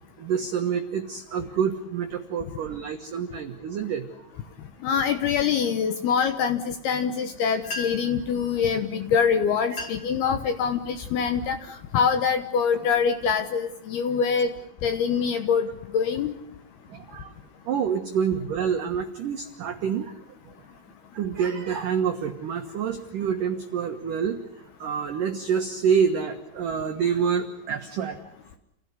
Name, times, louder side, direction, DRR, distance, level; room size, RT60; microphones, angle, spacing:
voice 1, 0.2-4.1 16.9-17.3 17.7-20.2 21.1-28.3, right 7 dB, 85° right, 5 dB, 1.8 m, -27 dB
voice 2, 4.8-14.5 14.8-16.3, left 6 dB, 70° left, 9 dB, 2.5 m, -24 dB
sound 1, 7.6-8.2 9.1-9.2 9.6-10.2 10.7-11.0 11.6-11.9 12.4-13.7, left 3 dB, 30° left, 3.6 m, -38 dB
28.5 x 16.5 x 9.8 m, 0.84 s
omnidirectional pair, 5.9 m